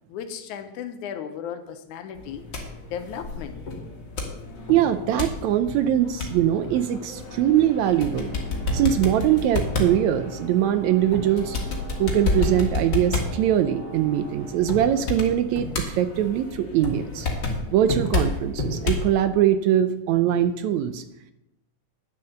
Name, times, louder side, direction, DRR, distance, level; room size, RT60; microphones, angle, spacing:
voice 1, 0.1-3.6, left 8 dB, 75° left, 8 dB, 2.2 m, -36 dB
sound 1, 2.1-19.1, left 3 dB, 40° left, 2.1 m, -30 dB
voice 2, 4.7-8.3 8.7-11.6 12.0-17.3 17.7-21.0, right 11 dB, 80° right, 11 dB, 1.8 m, -22 dB
sound 2, 8.2-15.0, right 3 dB, 25° left, 3.8 m, -43 dB
10.0 x 7.1 x 6.5 m, 0.88 s
omnidirectional pair, 3.6 m